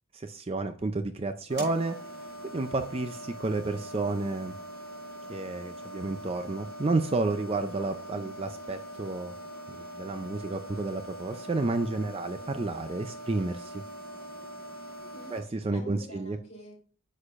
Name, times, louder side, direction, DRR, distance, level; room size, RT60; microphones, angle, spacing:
voice 1, 0.1-4.5 5.3-9.4 9.7-13.8 15.3-16.4, right 2 dB, 30° right, 8 dB, 0.4 m, -31 dB
sound 1, 1.5-15.4, equal, 60° right, 4.4 m, -43 dB
voice 2, 7.8-8.3 15.0-16.8, equal, 30° left, -2 dB, 3.6 m, -49 dB
9.7 x 6.5 x 2.5 m, 0.41 s
head